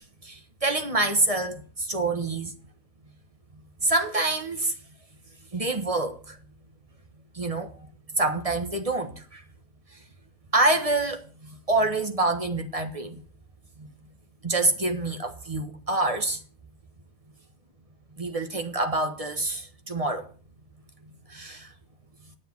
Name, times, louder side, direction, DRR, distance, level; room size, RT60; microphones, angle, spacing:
voice 1, 0.2-2.5 3.8-4.7 5.5-6.4 7.3-7.7 8.1-9.4 10.5-13.2 13.8-13.9 14.4-16.4 18.2-20.3 21.3-21.7, right 2 dB, 25° right, 1.1 m, -26 dB
10.5 x 7.1 x 7.0 m
omnidirectional pair, 1.9 m